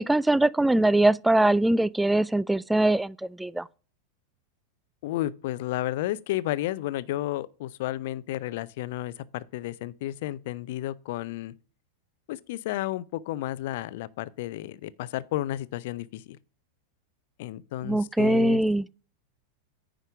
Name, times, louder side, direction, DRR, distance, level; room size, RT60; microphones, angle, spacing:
voice 1, 0.0-3.6 17.8-18.9, right 1 dB, 5° right, 0.3 m, -22 dB
voice 2, 5.0-11.5 12.3-16.4 17.4-18.6, left 14 dB, 50° left, 0.5 m, -32 dB
9.8 x 5.1 x 5.9 m
figure-of-eight pair, 90°, 0 cm